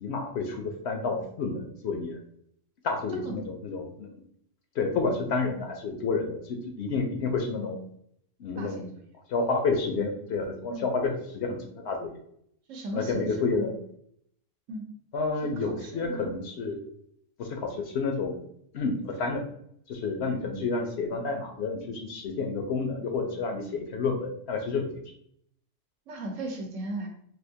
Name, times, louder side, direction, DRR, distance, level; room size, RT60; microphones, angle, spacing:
voice 1, 0.0-2.2 2.8-4.2 4.8-7.8 8.4-8.8 9.3-12.2 12.9-13.7 15.1-16.8 17.4-18.4 18.7-19.4 19.9-24.9, left 4 dB, 65° left, 3 dB, 0.8 m, -30 dB
voice 2, 3.1-3.5 8.6-8.9 10.7-10.9 12.7-13.7 14.7-14.8 15.4-16.3 26.1-27.1, right 1 dB, 75° right, 2 dB, 1.1 m, -37 dB
3.5 x 2.6 x 2.7 m, 0.68 s
omnidirectional pair, 1.4 m